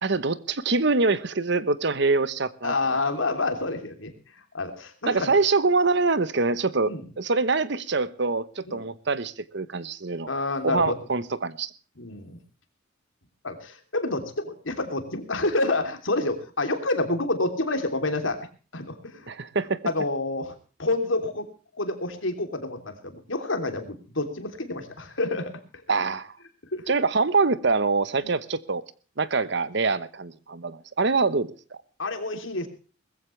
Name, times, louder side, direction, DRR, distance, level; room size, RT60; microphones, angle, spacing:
voice 1, 0.0-3.0 5.1-6.9 7.2-10.3 10.6-11.7 19.3-19.8 25.9-26.3 26.9-28.8 29.2-31.8, right 3 dB, 60° right, 1.0 m, -24 dB
voice 2, 2.6-4.1 4.5-5.3 6.9-7.0 8.7-8.8 10.3-10.9 12.0-12.4 13.4-18.4 18.7-19.3 19.8-20.5 20.8-21.5 21.7-25.5 26.7-26.9 28.2-28.3 32.0-32.7, left 2 dB, 85° left, 3.2 m, -28 dB
20.5 x 15.0 x 3.3 m
head